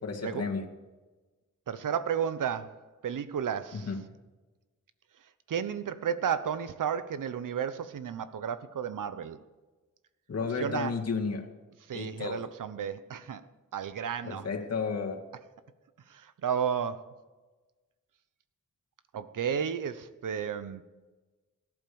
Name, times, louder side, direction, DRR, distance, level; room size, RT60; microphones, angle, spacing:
voice 1, 0.0-0.7 3.7-4.0 10.3-11.5 11.9-12.4 14.2-15.2, left 5 dB, 55° left, 2.2 m, -32 dB
voice 2, 1.7-3.9 5.5-9.4 10.6-10.9 11.9-13.4 13.7-14.5 16.1-17.1 19.1-20.8, right 8 dB, 85° right, 1.0 m, -32 dB
17.5 x 11.5 x 7.1 m
wide cardioid pair, 135°, 31 cm